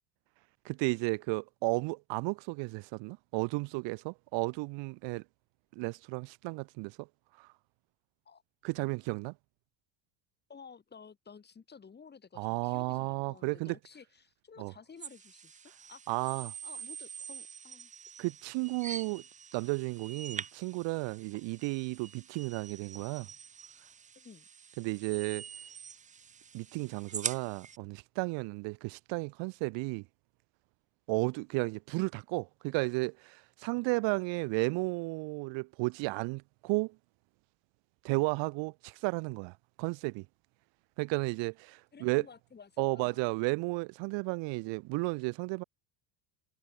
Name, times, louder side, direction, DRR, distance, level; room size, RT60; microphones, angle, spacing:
voice 1, 0.6-5.2 5.8-7.1 7.4-7.5 8.6-9.3 12.4-13.7 14.6-14.7 16.1-16.5 18.2-19.2 19.5-23.3 24.8-25.4 26.5-30.0 31.1-36.9 38.0-40.2 41.0-42.3 42.8-45.6, right 27 dB, 65° right, 0.9 m, -33 dB
voice 2, 10.5-16.2 16.6-17.9 24.2-24.5 41.9-43.3, left 6 dB, 20° left, 7.2 m, -53 dB
sound 1, 15.0-27.8, right 7 dB, 15° right, 0.7 m, -45 dB
cardioid pair, 160°, 48 cm